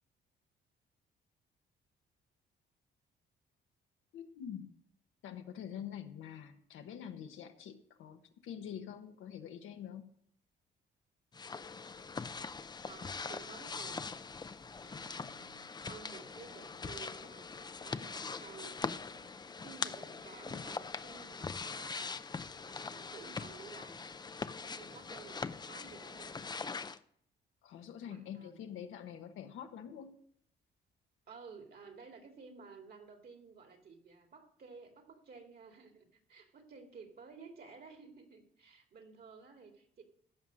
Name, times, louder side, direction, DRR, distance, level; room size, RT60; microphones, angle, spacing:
voice 1, 4.1-4.7 5.2-10.1 27.6-30.2, left 9 dB, 85° left, 5 dB, 1.2 m, -46 dB
sound 1, 11.3-27.0, left 4 dB, 20° left, 0.5 m, -42 dB
voice 2, 12.8-14.3 14.8-19.3 19.6-22.2 22.7-26.5 28.0-28.7 31.3-40.0, right 5 dB, 50° right, 4 dB, 2.3 m, -54 dB
14.5 x 5.6 x 5.1 m, 0.67 s
cardioid pair, 90°, 20 cm